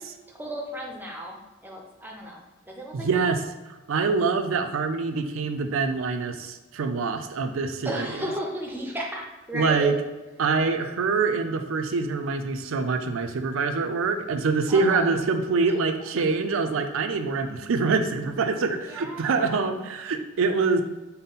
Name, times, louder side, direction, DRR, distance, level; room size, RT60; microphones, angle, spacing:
voice 1, 0.3-3.3 7.8-9.9 14.7-15.1 15.7-15.8 18.7-19.9, equal, 10° right, 0 dB, 0.5 m, -35 dB
voice 2, 2.9-8.3 9.5-9.9 10.4-20.8, right 4 dB, 70° right, 7 dB, 0.4 m, -25 dB
5.4 x 2.1 x 3.9 m, 1.2 s
head